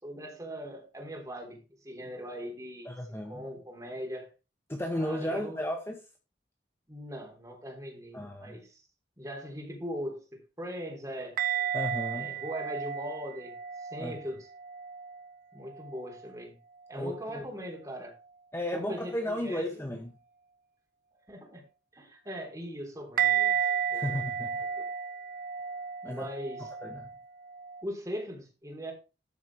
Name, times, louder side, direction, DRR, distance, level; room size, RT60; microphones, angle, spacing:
voice 1, 0.0-2.9 3.2-4.3 4.9-5.6 6.9-8.8 9.2-11.4 12.1-14.5 15.5-16.6 16.9-18.1 18.7-19.7 21.3-21.7 21.9-23.6 23.9-24.2 24.8-24.9 26.0-26.7 27.8-28.9, equal, 20° right, 3.3 m, -40 dB
voice 2, 2.8-3.5 4.7-6.0 8.1-8.6 11.7-12.3 14.0-14.2 16.9-17.5 18.5-20.1 23.9-24.6 26.0-27.1, left 1 dB, 15° left, 1.1 m, -34 dB
sound 1, 11.4-15.3 15.7-16.3 23.2-27.8, right 8 dB, 50° right, 0.6 m, -33 dB
13.0 x 4.9 x 4.7 m
head